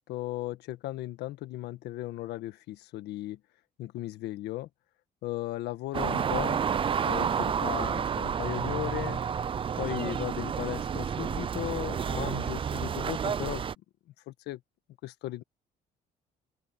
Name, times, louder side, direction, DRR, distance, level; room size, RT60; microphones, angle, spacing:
voice 1, 0.1-3.4 3.8-4.7 5.2-6.6 7.0-9.2 9.8-13.6 14.3-14.6 15.0-15.4, left 16 dB, 80° left, 1.6 m, -36 dB
sound 1, 5.9-13.8, right 7 dB, 30° right, 0.5 m, -30 dB
open air
cardioid pair, 110°, 17 cm